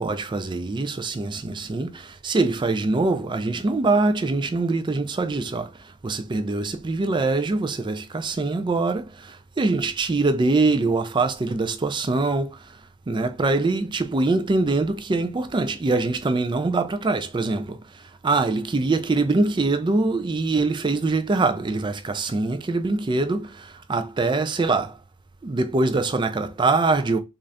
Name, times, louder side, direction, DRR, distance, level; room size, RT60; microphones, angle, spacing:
voice 1, 0.0-5.7 6.0-12.7 13.1-25.0 25.4-27.2, right 3 dB, 20° right, 0.4 m, -23 dB
3.8 x 2.5 x 3.2 m
head